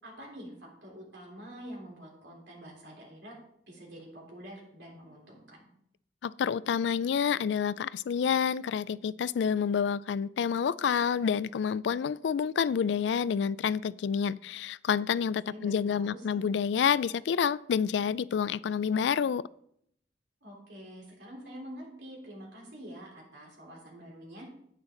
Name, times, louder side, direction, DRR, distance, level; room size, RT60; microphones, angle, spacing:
voice 1, 0.0-3.4 3.7-5.7 15.5-16.4 20.4-24.5, equal, 75° right, -2 dB, 3.7 m, -46 dB
voice 2, 6.2-19.4, left 7 dB, 70° left, 20 dB, 0.3 m, -28 dB
9.8 x 8.8 x 3.8 m, 0.72 s
head